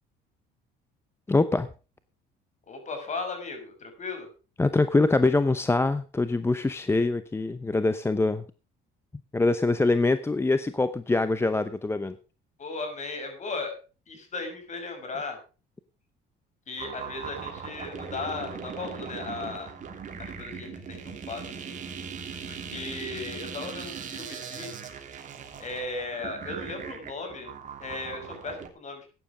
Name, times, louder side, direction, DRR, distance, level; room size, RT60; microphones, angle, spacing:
voice 1, 1.3-1.7 4.6-8.4 9.3-12.1, left 3 dB, 15° left, 12 dB, 0.8 m, -24 dB
voice 2, 2.7-4.3 12.6-13.8 14.1-15.4 16.7-19.7 20.2-21.8 22.4-24.7 25.6-27.5 27.8-29.1, left 3 dB, 40° left, 5 dB, 6.3 m, -36 dB
sound 1, 16.8-28.7, right 6 dB, 40° right, 3.2 m, -39 dB
15.0 x 9.7 x 5.0 m, 0.34 s
cardioid pair, 105°, 19 cm